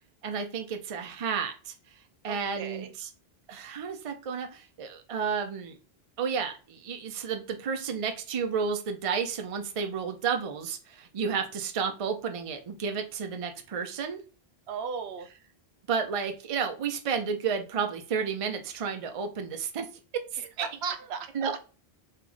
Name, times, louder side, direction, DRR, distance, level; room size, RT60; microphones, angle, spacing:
voice 1, 0.2-1.7 2.2-3.1 3.5-5.8 6.2-14.2 15.9-19.9 20.3-20.7 21.3-21.6, right 6 dB, 45° right, 5 dB, 0.5 m, -31 dB
voice 2, 2.3-2.9 14.7-15.3 20.4-21.5, right 6 dB, 80° right, 8 dB, 0.9 m, -36 dB
3.3 x 3.0 x 3.7 m, 0.35 s
omnidirectional pair, 1.1 m